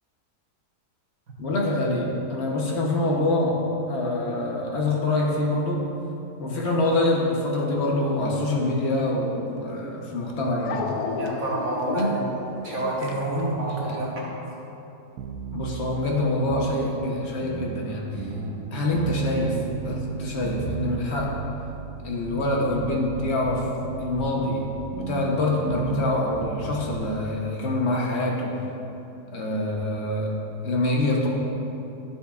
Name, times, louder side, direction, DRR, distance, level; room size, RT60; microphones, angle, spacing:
voice 1, 1.4-5.8 6.4-10.9 11.9-12.1 13.2-14.0 15.5-18.3 18.7-21.4 22.0-23.7 24.0-24.7 24.9-28.6 29.3-30.3 30.6-31.3, left 2 dB, 50° left, -2 dB, 1.1 m, -25 dB
Dog, 9.6-9.7 10.7-14.1, left 4 dB, 75° left, 1.1 m, -33 dB
voice 2, 11.2-12.2 12.6-14.3, right 2 dB, 60° right, -5 dB, 1.4 m, -28 dB
sound 1, 15.2-27.0, right 6 dB, 85° right, 1.2 m, -34 dB
11.0 x 7.0 x 2.4 m, 2.9 s
omnidirectional pair, 1.7 m